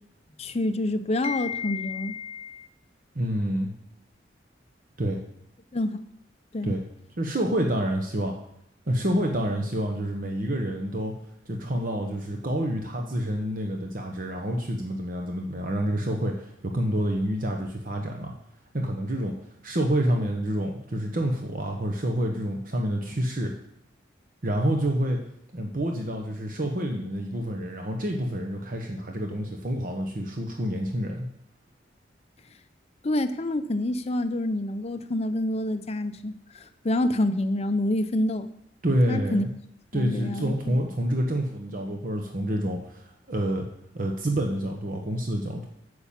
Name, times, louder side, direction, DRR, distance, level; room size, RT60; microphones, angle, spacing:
voice 1, 0.4-2.7 5.7-6.1 6.5-6.7 33.0-38.5 39.1-39.5 39.9-40.7, left 1 dB, 35° left, 10 dB, 0.6 m, -27 dB
voice 2, 3.1-3.7 5.0-5.2 6.6-6.8 7.2-8.4 8.9-11.1 11.5-18.3 18.7-19.3 19.6-23.5 24.4-25.2 25.5-31.3 38.8-39.5 39.9-43.6 43.9-45.7, right 1 dB, 50° right, 2 dB, 1.1 m, -28 dB
8.5 x 6.9 x 7.4 m, 0.74 s
head